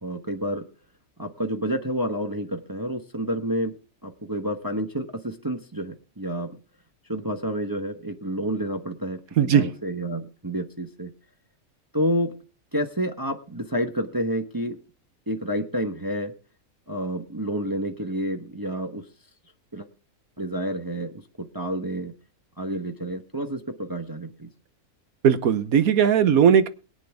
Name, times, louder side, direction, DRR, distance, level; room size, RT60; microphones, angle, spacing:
voice 1, 0.0-0.7 1.2-3.7 4.0-6.6 7.1-11.1 11.9-12.4 12.7-14.8 15.3-16.3 16.9-19.1 19.7-19.9 20.4-21.2 21.5-22.1 22.6-24.5, equal, 15° right, 5 dB, 1.0 m, -29 dB
voice 2, 9.4-9.7 25.2-26.7, right 8 dB, 75° right, 12 dB, 1.4 m, -18 dB
22.5 x 8.9 x 3.5 m, 0.35 s
omnidirectional pair, 1.5 m